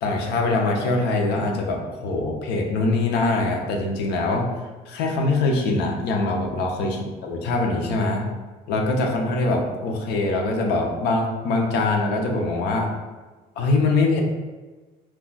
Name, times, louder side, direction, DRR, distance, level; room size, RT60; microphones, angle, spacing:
voice 1, 0.0-4.5 4.9-8.3 8.7-12.9 13.6-14.2, left 2 dB, 85° left, 1 dB, 0.5 m, -23 dB
2.3 x 2.2 x 3.8 m, 1.3 s
cardioid pair, 110°, 17 cm